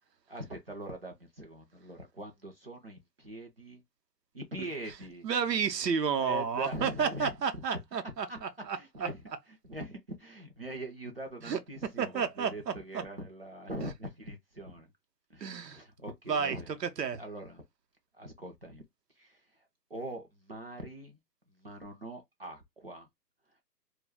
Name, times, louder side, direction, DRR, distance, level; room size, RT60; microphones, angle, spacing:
voice 1, 0.3-3.8 4.3-5.3 6.2-7.6 8.3-14.9 15.3-16.8 17.1-17.6 18.1-18.8 19.2-19.4 19.9-21.2 21.6-23.1, right 1 dB, 40° right, 0.5 m, -42 dB
voice 2, 5.2-8.8 11.4-11.6 12.0-13.0 15.4-15.8 16.3-17.2, right 6 dB, 75° right, 0.8 m, -31 dB
2.2 x 2.0 x 3.3 m
hypercardioid pair, 155°, 49 cm